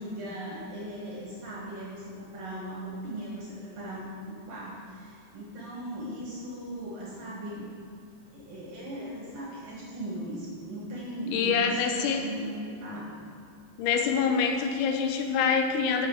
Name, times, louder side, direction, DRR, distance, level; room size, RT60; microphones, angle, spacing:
voice 1, 0.0-7.7 8.3-13.1, right 1 dB, 55° right, -5 dB, 2.1 m, -38 dB
voice 2, 11.3-12.2 13.8-16.1, left 6 dB, 90° left, 4 dB, 2.9 m, -25 dB
8.0 x 5.9 x 6.9 m, 2.6 s
omnidirectional pair, 4.6 m